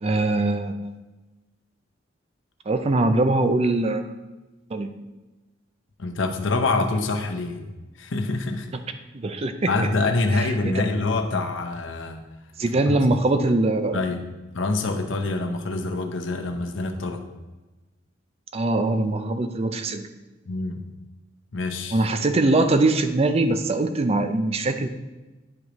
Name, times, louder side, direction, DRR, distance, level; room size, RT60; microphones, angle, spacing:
voice 1, 0.0-0.8 2.7-4.1 4.7-4.9 9.1-9.7 10.3-10.8 12.6-14.0 18.5-20.1 21.9-24.9, right 2 dB, 35° right, 8 dB, 0.4 m, -22 dB
voice 2, 6.0-7.7 8.0-8.7 9.7-12.2 12.9-13.0 13.9-14.2 14.5-17.2 20.5-20.9 21.5-22.0, left 3 dB, 80° left, 5 dB, 0.8 m, -26 dB
9.5 x 5.0 x 3.0 m, 1.2 s
head